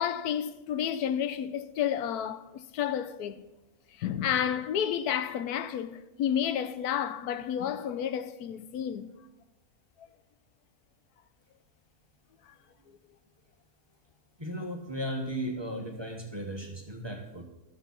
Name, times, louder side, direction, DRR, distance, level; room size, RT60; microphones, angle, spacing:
voice 1, 0.0-3.5 4.0-9.1, left 9 dB, 90° left, 1.2 m, -31 dB
voice 2, 14.4-17.4, equal, 20° right, 1.3 m, -36 dB
13.0 x 7.5 x 5.7 m
omnidirectional pair, 1.6 m